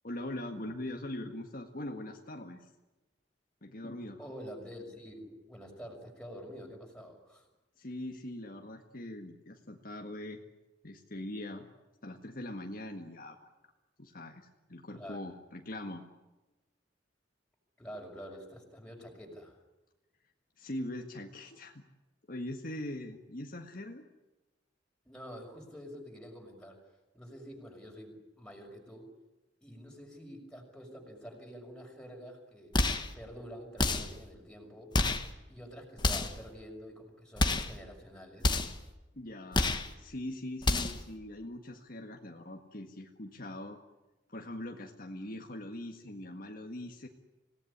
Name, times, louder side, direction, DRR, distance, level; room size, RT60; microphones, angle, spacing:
voice 1, 0.0-2.7 3.6-4.2 7.8-10.4 10.8-11.7 12.0-13.4 14.0-16.0 20.6-21.8 22.3-24.1 39.1-39.7 40.0-43.8 44.3-47.1, left 1 dB, 50° left, 3 dB, 1.8 m, -42 dB
voice 2, 4.2-7.5 14.9-15.3 17.8-19.6 25.0-29.1 29.6-32.8 33.1-34.9 35.5-38.5, equal, 5° left, 1 dB, 5.9 m, -47 dB
sound 1, 32.7-33.1 33.8-34.2 34.9-35.3 36.0-36.4 37.4-37.7 38.4-38.8 39.5-39.9 40.6-41.0, left 2 dB, 25° left, 1.6 m, -29 dB
26.5 x 18.0 x 10.0 m, 1.1 s
head